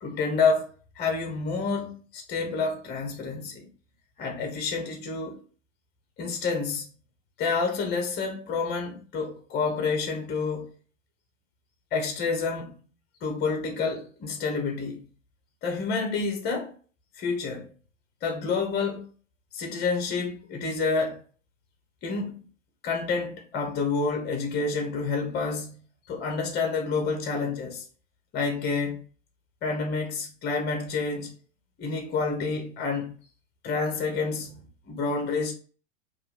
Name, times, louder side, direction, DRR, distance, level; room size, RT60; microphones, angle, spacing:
voice 1, 0.0-3.6 4.2-5.4 6.2-6.9 7.4-10.7 11.9-12.7 13.2-15.0 15.6-16.7 17.2-17.7 18.2-19.0 19.5-21.2 22.0-22.5 22.8-25.8 26.1-27.8 28.3-29.0 29.6-31.3 31.8-33.1 33.6-34.6 34.8-35.6, left 4 dB, 25° left, 1.1 m, -28 dB
4.5 x 2.7 x 3.7 m
figure-of-eight pair, 95°, 38 cm